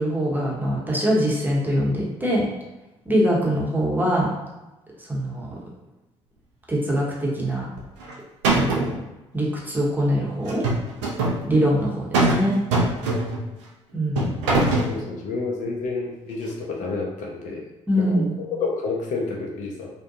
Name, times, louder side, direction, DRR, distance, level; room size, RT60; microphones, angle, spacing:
voice 1, 0.0-2.4 3.1-4.3 5.1-5.5 6.7-7.6 8.6-8.8 9.3-10.6 11.4-12.6 13.9-14.4 17.9-18.3, equal, 10° right, -4 dB, 0.9 m, -23 dB
sound 1, 7.8-8.1 8.4-9.0 10.5-11.4 12.1-12.4 12.7-13.5 14.2-14.9, right 2 dB, 75° right, 0.5 m, -21 dB
voice 2, 14.9-17.6 17.9-19.9, left 3 dB, 55° left, -1 dB, 0.6 m, -29 dB
2.5 x 2.2 x 2.7 m, 1.0 s
figure-of-eight pair, 50°, 15 cm